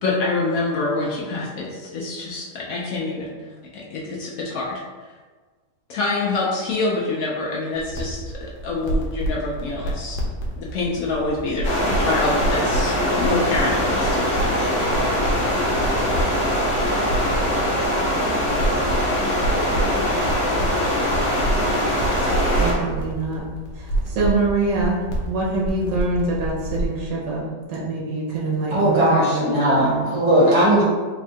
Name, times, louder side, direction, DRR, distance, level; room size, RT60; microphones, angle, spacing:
voice 1, 0.0-3.3 3.7-4.8 5.9-10.2 10.6-14.7, left 3 dB, 70° left, -3 dB, 0.9 m, -26 dB
sound 1, 7.8-27.0, right 1 dB, 85° left, 1.4 m, -29 dB
sound 2, 11.6-22.7, equal, 50° left, 1.3 m, -22 dB
voice 2, 22.6-23.4 23.7-25.0 25.3-27.4 27.7-30.0, right 3 dB, 80° right, -5 dB, 1.4 m, -24 dB
voice 3, 28.7-30.8, right 1 dB, 50° right, -8 dB, 1.5 m, -18 dB
3.5 x 2.4 x 4.2 m, 1.4 s
omnidirectional pair, 1.8 m